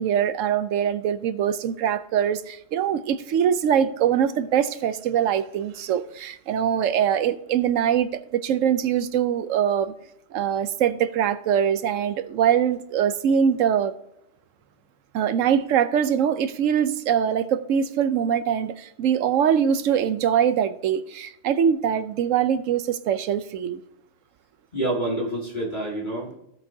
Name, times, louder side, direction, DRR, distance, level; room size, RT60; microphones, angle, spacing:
voice 1, 0.0-9.9 10.3-13.9 15.1-23.8, right 8 dB, 80° right, 1.0 m, -23 dB
voice 2, 24.7-26.4, right 1 dB, 35° left, 2.2 m, -27 dB
16.5 x 6.9 x 2.7 m
omnidirectional pair, 1.3 m